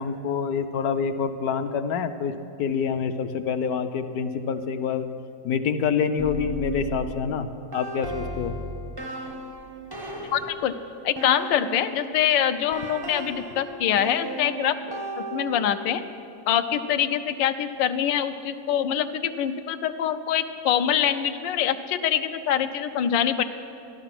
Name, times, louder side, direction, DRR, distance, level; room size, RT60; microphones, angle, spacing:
voice 1, 0.0-5.1 5.4-7.5 7.7-8.5, left 6 dB, 70° left, 9 dB, 1.0 m, -26 dB
sound 1, 6.2-12.1 12.7-15.9, right 1 dB, 40° right, 0.3 m, -35 dB
voice 2, 10.3-10.7 11.0-15.0 15.3-16.0 16.5-23.4, left 9 dB, 85° left, 9 dB, 1.4 m, -24 dB
14.5 x 11.5 x 6.0 m, 2.7 s
omnidirectional pair, 2.0 m